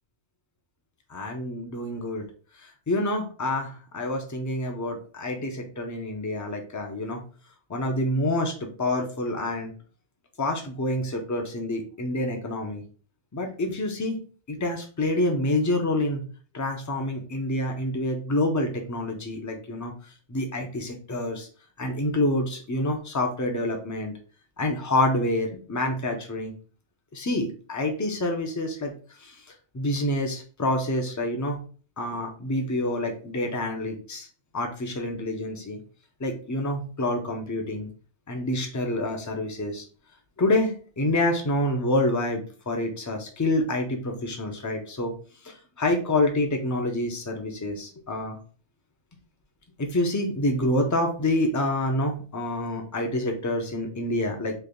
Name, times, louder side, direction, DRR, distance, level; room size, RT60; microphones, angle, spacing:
voice 1, 1.1-2.2 2.6-7.2 7.7-9.7 10.4-12.8 13.3-14.2 14.5-16.3 16.5-19.9 20.3-21.5 21.8-24.1 24.6-26.5 27.1-28.9 29.2-29.4 29.7-31.6 32.0-34.3 34.5-35.8 36.2-37.9 38.3-39.8 40.4-45.1 45.4-48.4 49.8-54.5, left 1 dB, 20° left, 3 dB, 0.5 m, -27 dB
3.3 x 2.5 x 3.7 m, 0.40 s
omnidirectional pair, 1.2 m